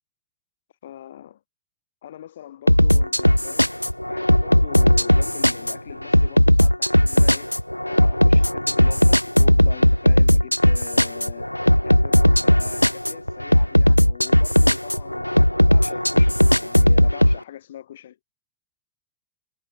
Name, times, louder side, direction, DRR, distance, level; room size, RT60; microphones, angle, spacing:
voice 1, 0.8-1.4 2.0-7.5 7.8-11.5 11.8-15.3 15.7-18.2, left 11 dB, 60° left, 5.5 m, -41 dB
sound 1, 2.7-17.4, left 1 dB, 90° left, 0.7 m, -17 dB
figure-of-eight pair, 90°, 0 cm